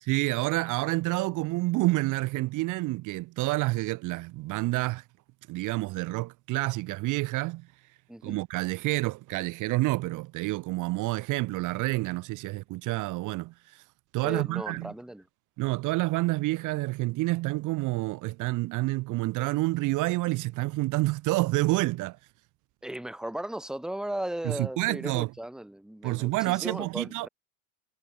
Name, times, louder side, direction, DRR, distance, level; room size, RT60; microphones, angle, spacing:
voice 1, 0.1-5.0 5.5-7.7 8.2-13.8 14.1-14.9 15.6-22.2 24.4-25.3 26.0-27.3, right 20 dB, 45° right, 1.3 m, -28 dB
voice 2, 8.1-8.4 14.2-15.3 22.8-27.3, right 1 dB, ahead, 1.8 m, -36 dB
hypercardioid pair, 90°, 41 cm